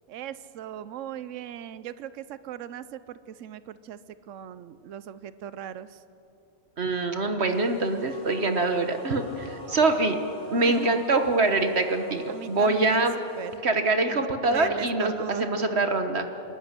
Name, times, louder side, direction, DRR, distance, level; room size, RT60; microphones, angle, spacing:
voice 1, 0.1-4.0 4.3-5.9 10.4-11.0 12.3-13.1 13.4-13.7 14.1-15.5, right 10 dB, 80° right, 15 dB, 1.0 m, -38 dB
voice 2, 6.8-10.2 10.5-13.1 13.6-16.3, right 2 dB, 60° right, 7 dB, 1.5 m, -24 dB
sound 1, 7.5-13.6, left 1 dB, 60° left, 4.0 m, -46 dB
27.5 x 13.5 x 9.9 m, 2.9 s
omnidirectional pair, 1.3 m